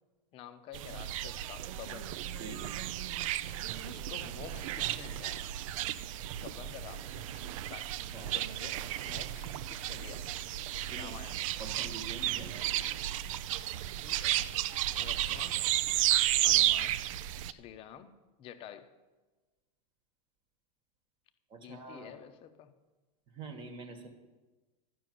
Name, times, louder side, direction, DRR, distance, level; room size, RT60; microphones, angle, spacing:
voice 1, 0.3-2.1 3.9-5.5 6.4-7.9 8.2-10.2 10.9-11.4 14.0-14.4 15.0-15.7 16.4-17.0 17.5-18.9 21.6-22.7, left 10 dB, 30° left, 10 dB, 0.8 m, -49 dB
sound 1, 0.7-17.5, right 13 dB, 60° right, 0.5 m, -33 dB
voice 2, 11.6-12.5 21.5-22.2 23.3-24.1, right 3 dB, 25° right, 6 dB, 1.3 m, -45 dB
12.5 x 6.3 x 9.2 m, 1.2 s
supercardioid pair, 160°, 19 cm